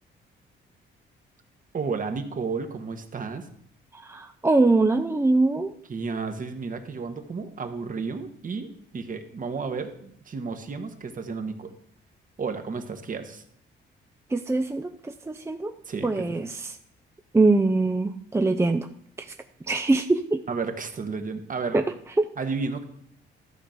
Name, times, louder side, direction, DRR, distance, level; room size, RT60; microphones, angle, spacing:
voice 1, 1.7-3.5 5.9-8.7 8.9-11.7 12.4-13.4 15.9-16.2 20.5-21.8 22.4-22.8, right 4 dB, 40° right, 7 dB, 1.6 m, -32 dB
voice 2, 3.9-5.7 14.3-15.7 16.0-16.8 17.3-18.9 19.2-19.3 19.7-20.4 21.7-21.8 22.2-22.3, right 3 dB, 15° right, 6 dB, 0.6 m, -23 dB
13.5 x 6.0 x 5.2 m, 0.66 s
cardioid pair, 90°, 20 cm